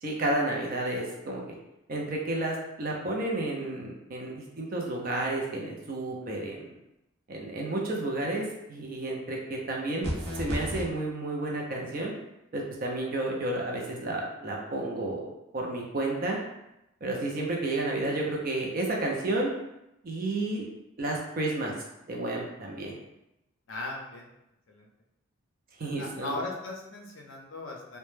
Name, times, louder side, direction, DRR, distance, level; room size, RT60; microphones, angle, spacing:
voice 1, 0.0-1.6 1.9-6.7 7.3-8.4 8.7-10.1 10.3-12.1 12.5-16.4 17.0-19.5 20.0-20.6 21.0-21.7 22.1-23.0 25.8-26.4, right 2 dB, 40° right, -1 dB, 0.4 m, -31 dB
sound 1, 10.0-10.8, equal, 85° right, 0.6 m, -32 dB
voice 2, 23.7-24.3 24.7-24.9 26.0-28.0, left 2 dB, 60° left, 0 dB, 0.5 m, -38 dB
2.1 x 2.0 x 3.0 m, 0.87 s
head